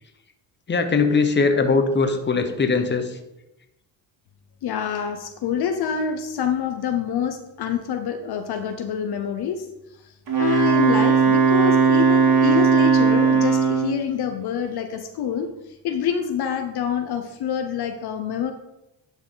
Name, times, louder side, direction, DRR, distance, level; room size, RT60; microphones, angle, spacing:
voice 1, 0.7-3.2, left 4 dB, 25° left, 6 dB, 1.0 m, -20 dB
voice 2, 4.6-9.7 10.4-15.5 15.8-18.5, left 7 dB, 60° left, 7 dB, 0.8 m, -26 dB
Wind instrument woodwind instrument, 10.3-14.0, right 6 dB, 45° right, 2.5 m, -17 dB
10.5 x 4.3 x 3.9 m, 0.92 s
cardioid pair, 85°, 44 cm